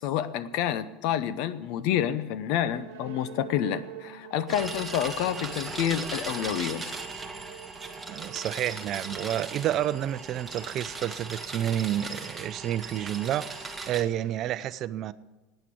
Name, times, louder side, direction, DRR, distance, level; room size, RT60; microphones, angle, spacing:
voice 1, 0.0-6.9, left 10 dB, 65° left, 14 dB, 0.8 m, -28 dB
sound 1, 2.6-10.3, right 10 dB, 90° right, 1.0 m, -46 dB
sound 2, 4.5-14.0, right 3 dB, 10° right, 1.5 m, -38 dB
voice 2, 8.1-15.1, right 11 dB, 45° right, 15 dB, 0.6 m, -30 dB
11.5 x 9.2 x 8.6 m, 1.1 s
supercardioid pair, 120°, 0 cm